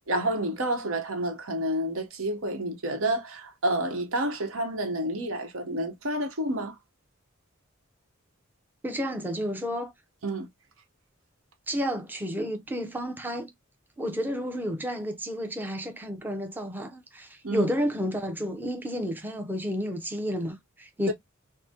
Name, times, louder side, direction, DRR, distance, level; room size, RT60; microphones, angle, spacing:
voice 1, 0.1-6.7 10.2-10.5 17.4-17.7 21.1-21.2, right 1 dB, 85° right, 0.9 m, -29 dB
voice 2, 8.8-9.9 11.7-13.5 14.0-21.1, equal, 10° right, 0.6 m, -31 dB
4.7 x 2.1 x 2.8 m
head